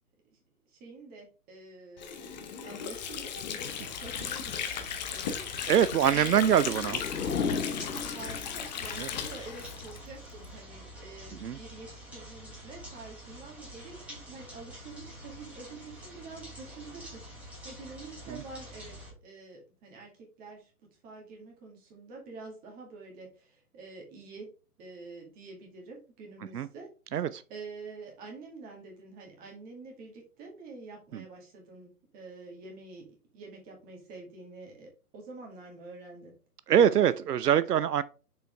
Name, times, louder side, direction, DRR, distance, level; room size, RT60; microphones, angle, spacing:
voice 1, 0.7-5.7 6.1-6.8 7.9-20.7 21.0-24.5 24.8-36.3, right 3 dB, 20° right, 2.1 m, -47 dB
Water / Sink (filling or washing), 2.0-10.5, left 8 dB, 30° left, 0.8 m, -37 dB
sound 1, 3.6-19.1, equal, 5° right, 2.4 m, -47 dB
voice 2, 5.7-7.0 9.0-9.1 11.4-11.6 26.5-26.7 27.1-27.4 31.1-31.2 36.7-38.0, right 9 dB, 80° right, 0.6 m, -24 dB
sound 2, 6.2-8.9, left 5 dB, 80° left, 1.1 m, -34 dB
6.7 x 4.7 x 3.3 m
figure-of-eight pair, 135°, 46 cm